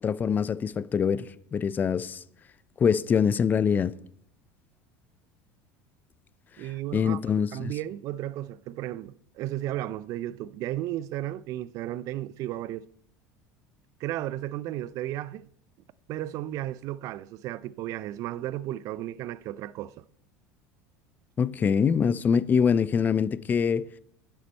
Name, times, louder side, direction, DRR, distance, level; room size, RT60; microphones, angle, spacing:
voice 1, 0.0-2.2 2.8-4.0 6.6-7.7 21.4-23.9, left 7 dB, 25° left, 0.4 m, -24 dB
voice 2, 6.6-7.2 7.5-12.9 14.0-15.5 16.1-20.0, right 14 dB, 55° right, 0.4 m, -34 dB
10.5 x 6.9 x 4.4 m
supercardioid pair, 110°, 7 cm